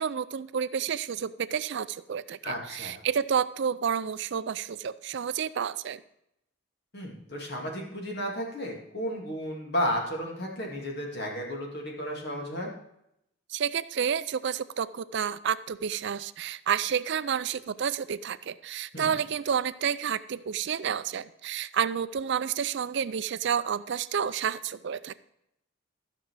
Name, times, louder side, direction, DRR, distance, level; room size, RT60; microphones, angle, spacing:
voice 1, 0.0-6.0 13.5-25.1, right 7 dB, 55° right, 14 dB, 0.4 m, -30 dB
voice 2, 2.4-3.0 6.9-12.7 18.9-19.1, equal, 50° left, -1 dB, 2.3 m, -33 dB
14.0 x 6.1 x 4.7 m, 0.79 s
head